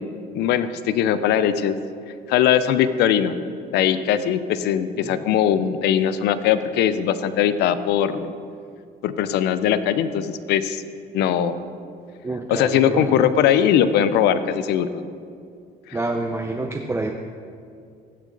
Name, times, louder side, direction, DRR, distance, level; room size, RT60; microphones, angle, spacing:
voice 1, 0.3-1.8 2.3-3.4 3.7-8.3 9.0-10.8 11.1-11.6 12.5-15.0 15.9-16.0, left 9 dB, 80° left, 13 dB, 0.6 m, -20 dB
voice 2, 12.2-13.1 15.9-17.1, right 2 dB, 15° right, 3 dB, 0.5 m, -27 dB
15.5 x 6.5 x 3.9 m, 2.3 s
cardioid pair, 110°, 17 cm